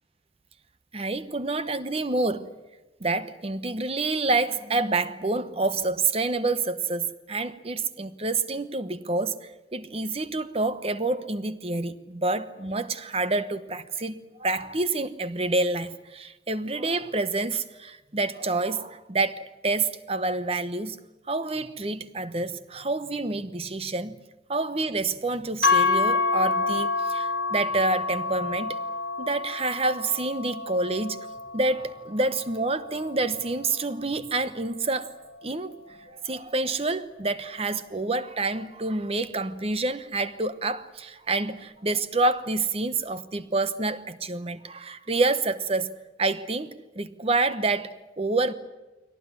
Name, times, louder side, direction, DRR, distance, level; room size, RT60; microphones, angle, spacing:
voice 1, 0.9-2.5 3.0-21.0 21.3-24.2 24.5-28.8 29.2-31.2 31.5-35.1 35.4-45.9 46.2-48.5, right 3 dB, 35° right, 1.0 m, -28 dB
sound 1, 25.6-33.9, left 4 dB, 60° left, 1.4 m, -28 dB
22.5 x 18.0 x 9.8 m
head